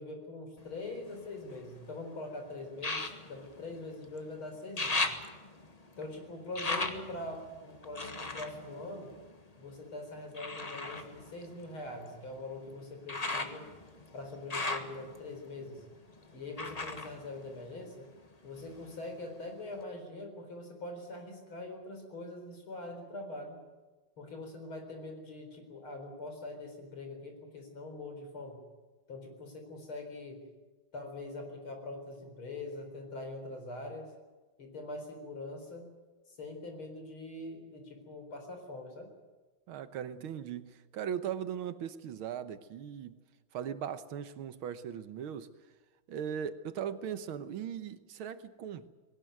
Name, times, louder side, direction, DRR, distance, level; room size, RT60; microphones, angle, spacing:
voice 1, 0.0-5.1 6.0-9.1 9.6-13.7 14.1-15.8 16.3-18.1 18.4-23.6 24.2-28.6 29.1-30.5 30.9-34.1 34.6-35.9 36.3-39.1, left 2 dB, 80° left, 5.0 m, -43 dB
sound 1, 0.6-1.9 2.8-4.3 4.5-9.7 10.3-18.2 18.5-19.3 19.8-19.9, left 2 dB, 20° left, 1.3 m, -38 dB
voice 2, 39.7-43.1 43.5-45.5 46.1-48.9, right 8 dB, 80° right, 1.9 m, -39 dB
20.0 x 18.5 x 9.2 m
omnidirectional pair, 2.3 m